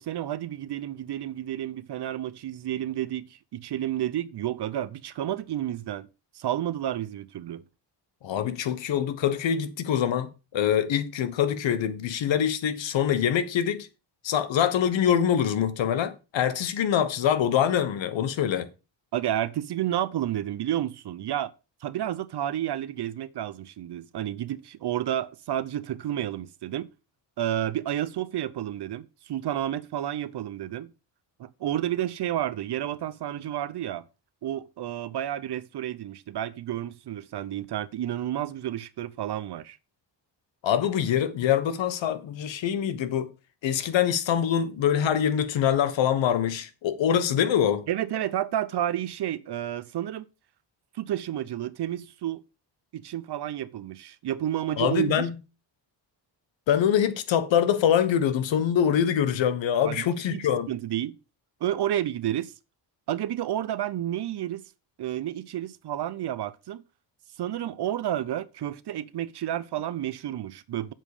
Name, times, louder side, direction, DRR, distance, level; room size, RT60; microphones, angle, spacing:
voice 1, 0.0-6.1 6.4-7.6 19.1-21.5 21.8-26.9 27.4-30.9 31.4-34.0 34.4-39.8 47.9-50.3 50.9-52.4 52.9-55.3 59.9-61.2 61.6-62.5 63.1-64.6 65.0-66.8 67.4-70.9, right 12 dB, 65° right, 0.7 m, -31 dB
voice 2, 8.2-13.9 14.2-18.7 40.6-43.3 43.6-47.8 54.8-55.3 56.7-60.7, left 9 dB, 80° left, 1.3 m, -24 dB
7.6 x 7.4 x 4.9 m
cardioid pair, 125°, 44 cm